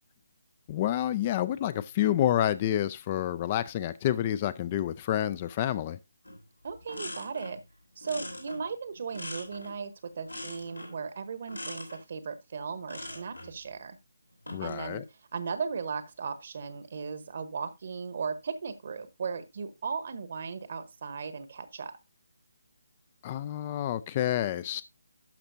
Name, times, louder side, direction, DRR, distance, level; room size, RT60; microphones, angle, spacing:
voice 1, 0.7-6.0 14.5-15.0 23.2-24.8, left 12 dB, 25° left, 0.4 m, -28 dB
sound 1, 6.2-6.4 6.7-7.6 8.0-9.8 10.3-11.0 11.5-12.0 12.8-13.5 14.3-14.8, left 1 dB, 80° left, 3.0 m, -42 dB
voice 2, 6.6-7.6 8.0-14.0 14.6-22.0, right 5 dB, 40° right, 1.0 m, -37 dB
12.0 x 5.9 x 2.6 m
figure-of-eight pair, 145°, 0 cm